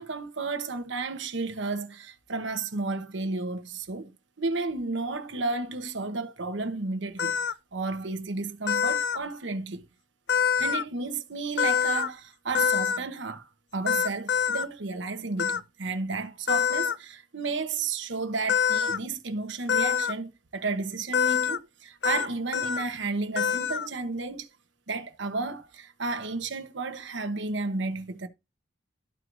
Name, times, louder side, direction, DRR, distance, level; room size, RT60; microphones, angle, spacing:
voice 1, 0.0-4.1 4.4-7.4 7.7-9.8 10.6-24.5 24.9-28.3, right 3 dB, 80° right, 1.0 m, -32 dB
sound 1, 7.2-7.5 8.7-9.2 10.3-10.8 11.6-12.1 12.5-13.0 13.9-14.6 15.4-15.6 16.5-16.9 18.5-19.0 19.7-20.1 21.1-21.6 22.0-22.3 22.5-22.8 23.4-23.9, left 7 dB, 65° left, 0.5 m, -25 dB
13.5 x 4.6 x 2.6 m
head